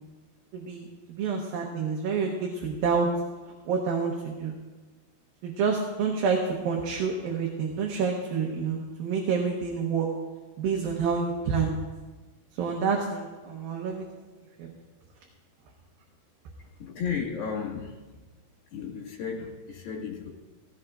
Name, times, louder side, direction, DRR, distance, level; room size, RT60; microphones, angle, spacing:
voice 1, 0.5-3.1 3.7-4.5 5.4-10.1 10.6-11.8 12.6-14.0 14.6-14.7, right 5 dB, 70° right, 0 dB, 2.7 m, -28 dB
voice 2, 16.8-18.0 18.7-20.3, left 6 dB, 70° left, -2 dB, 3.9 m, -34 dB
17.0 x 15.5 x 2.5 m, 1.3 s
omnidirectional pair, 4.6 m